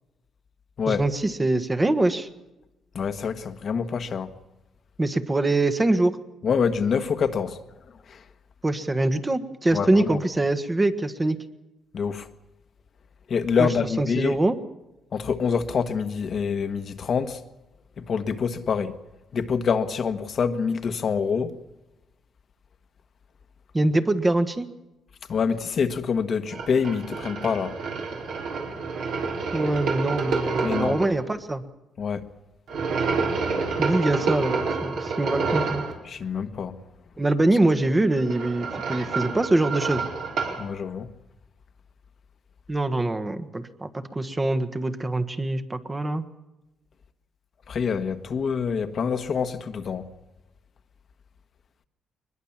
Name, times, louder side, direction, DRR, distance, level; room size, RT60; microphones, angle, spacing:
voice 1, 0.9-2.3 5.0-6.2 8.6-11.4 13.6-13.7 14.0-14.6 23.7-24.7 29.5-31.6 33.8-35.8 37.2-40.0 42.7-46.2, right 2 dB, 20° right, 1.4 m, -24 dB
voice 2, 2.9-4.3 6.4-7.6 8.1-8.2 9.7-10.2 11.9-12.3 13.3-14.4 15.1-17.4 18.0-18.9 19.3-21.6 25.3-27.7 30.6-31.0 32.0-32.3 36.0-36.7 40.6-41.1 47.7-50.1, left 6 dB, 55° left, 1.4 m, -26 dB
sound 1, 26.5-31.1 32.7-35.9 38.0-40.6, right 4 dB, 75° right, 5.1 m, -28 dB
22.5 x 21.0 x 7.4 m
cardioid pair, 90°, 0 cm